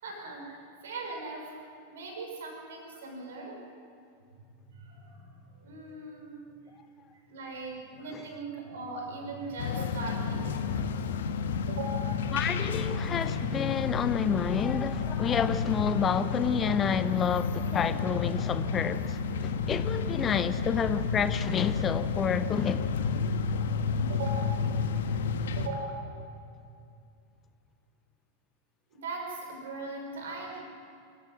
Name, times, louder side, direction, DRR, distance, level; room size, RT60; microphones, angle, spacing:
voice 1, 0.0-3.6 4.3-6.5 7.1-10.8 11.7-12.3 24.1-24.5 25.5-26.2 28.9-30.6, right 2 dB, 60° right, 6.0 m, -40 dB
sound 1, 9.6-25.7, left 5 dB, 60° left, 1.3 m, -31 dB
voice 2, 12.3-22.9, left 7 dB, 25° left, 0.7 m, -29 dB
26.5 x 15.0 x 7.8 m
figure-of-eight pair, 90°, 0 cm